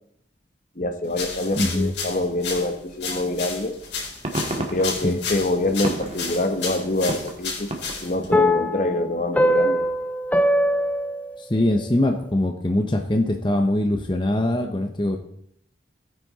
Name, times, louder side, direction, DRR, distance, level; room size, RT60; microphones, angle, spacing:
voice 1, 0.8-3.8 4.6-7.7 8.0-9.9, left 1 dB, 45° left, 7 dB, 1.2 m, -25 dB
sound 1, 1.1-8.4, left 5 dB, 75° left, 4.5 m, -33 dB
voice 2, 1.6-1.9 5.0-5.2 11.4-15.2, left 1 dB, 25° left, 4 dB, 1.0 m, -22 dB
sound 2, 3.8-8.4, right 1 dB, 35° right, 1.9 m, -34 dB
sound 3, 8.3-11.8, equal, 10° left, 0.6 m, -21 dB
18.0 x 9.8 x 4.2 m, 0.71 s
head